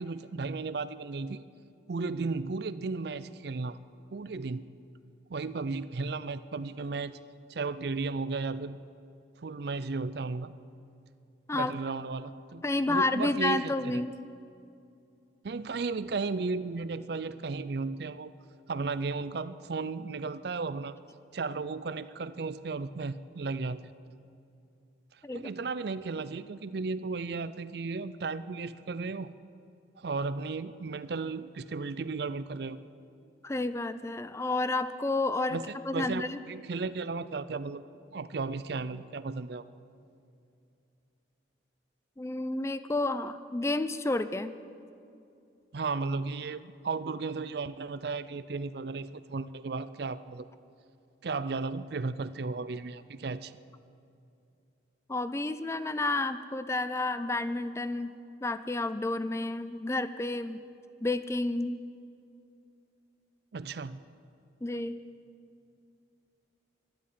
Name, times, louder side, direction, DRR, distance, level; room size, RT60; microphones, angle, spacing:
voice 1, 0.0-1.4 1.9-3.8 4.1-4.6 5.3-7.2 7.5-8.8 9.4-10.5 11.5-14.0 15.4-18.3 18.7-21.0 21.3-23.9 25.3-29.3 30.0-32.8 35.5-37.8 38.1-39.7 45.7-50.5 51.2-53.5 63.5-64.0, right 4 dB, 55° right, 15 dB, 0.5 m, -34 dB
voice 2, 12.6-14.1 25.2-25.5 33.4-35.6 35.8-36.4 42.2-44.5 55.1-58.1 58.4-60.6 61.0-61.8 64.6-65.0, left 2 dB, 15° left, 12 dB, 0.4 m, -30 dB
12.5 x 11.5 x 9.3 m, 2.6 s
head